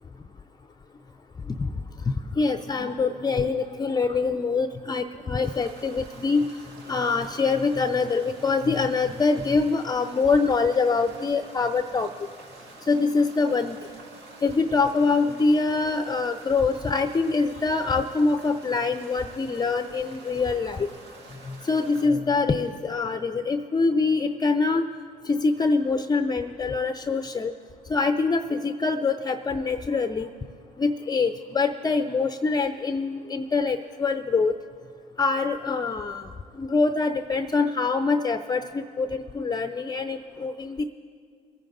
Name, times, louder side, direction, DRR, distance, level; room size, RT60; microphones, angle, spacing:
voice 1, 2.3-6.5 6.9-12.1 12.9-13.8 14.4-20.9 21.5-24.9 25.3-27.5 27.9-30.3 30.8-34.5 35.2-36.3 36.6-40.8, left 4 dB, 20° left, 10 dB, 0.5 m, -24 dB
sound 1, 5.4-22.1, right 2 dB, 65° right, 2.0 m, -48 dB
22.0 x 9.7 x 3.9 m, 2.1 s
hypercardioid pair, 60°, 19 cm